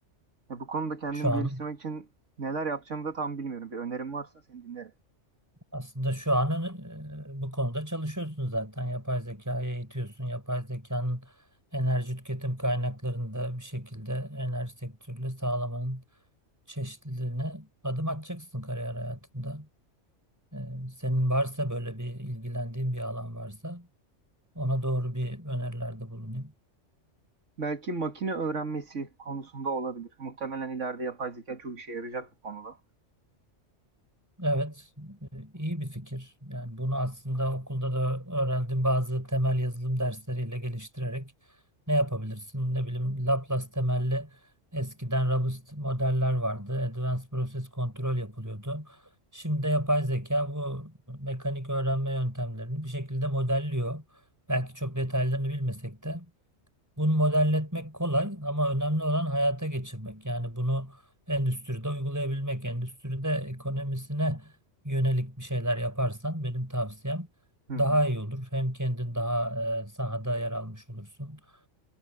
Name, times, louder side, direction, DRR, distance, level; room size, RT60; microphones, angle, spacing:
voice 1, 0.5-2.1 2.4-4.9 27.6-32.8 67.7-67.8, right 4 dB, 80° right, 2.3 m, -34 dB
voice 2, 1.2-1.6 5.7-11.3 11.7-16.0 16.7-19.7 20.5-23.9 24.5-26.5 34.4-41.3 41.9-44.3 44.7-49.0 49.3-54.0 54.5-56.3 57.0-61.0 61.3-64.5 64.8-67.3 67.8-71.4, equal, 15° right, 4.6 m, -30 dB
omnidirectional pair, 1.3 m